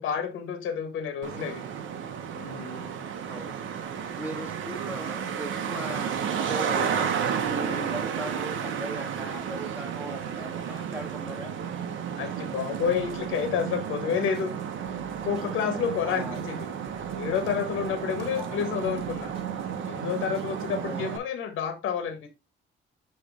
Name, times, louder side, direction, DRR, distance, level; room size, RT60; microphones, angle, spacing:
voice 1, 0.0-1.6 2.3-3.0 12.2-14.5 15.2-16.6 17.2-19.3 19.9-22.3, left 7 dB, 85° left, 1.7 m, -29 dB
Traffic noise roadway noise, 1.2-21.2, right 8 dB, 75° right, 1.1 m, -32 dB
voice 2, 3.3-3.6 4.2-7.2 7.5-11.5 16.0-16.4 18.4-18.6 20.8-21.2, right 1 dB, 10° right, 1.9 m, -38 dB
sound 1, 12.8-20.8, equal, 30° right, 4.4 m, -57 dB
9.4 x 3.3 x 3.7 m
cardioid pair, 90°, 20 cm